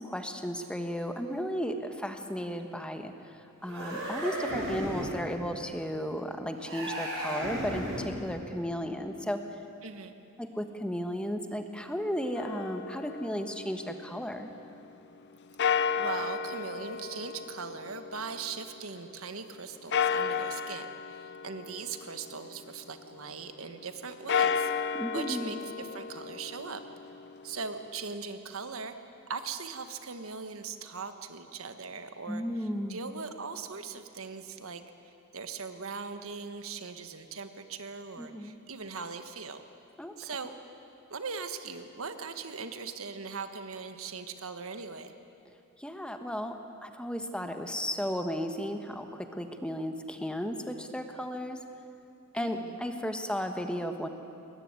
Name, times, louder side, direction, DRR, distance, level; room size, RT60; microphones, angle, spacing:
voice 1, 0.0-3.1 3.6-9.4 10.4-14.5 24.9-25.5 32.3-33.0 38.2-38.6 40.0-40.2 45.8-51.6 52.3-54.1, equal, 5° left, 6 dB, 1.3 m, -34 dB
sound 1, 3.6-5.3 6.6-8.2, equal, 65° right, 6.0 m, -34 dB
voice 2, 9.8-10.2 15.9-24.9 25.1-26.8 27.4-28.9 29.3-34.8 35.3-39.6 40.2-40.5 41.1-45.1 52.3-52.8, right 5 dB, 85° right, 8 dB, 1.5 m, -40 dB
sound 2, 12.4-14.4 15.6-19.0 19.9-22.9 24.1-28.1, left 6 dB, 55° left, 0.7 m, -33 dB
22.5 x 20.0 x 9.7 m, 2.6 s
head